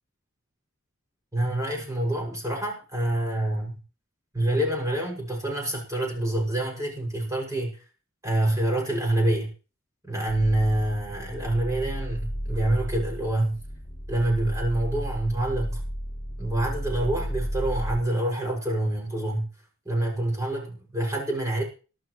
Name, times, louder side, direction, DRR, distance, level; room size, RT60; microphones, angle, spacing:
voice 1, 1.3-3.8 4.3-7.8 8.2-9.5 10.0-13.6 14.1-15.8 16.4-19.5 19.8-21.6, right 1 dB, 15° right, 0 dB, 6.6 m, -26 dB
sound 1, 10.3-18.0, equal, 25° left, 3.1 m, -33 dB
23.5 x 12.5 x 3.2 m, 0.35 s
head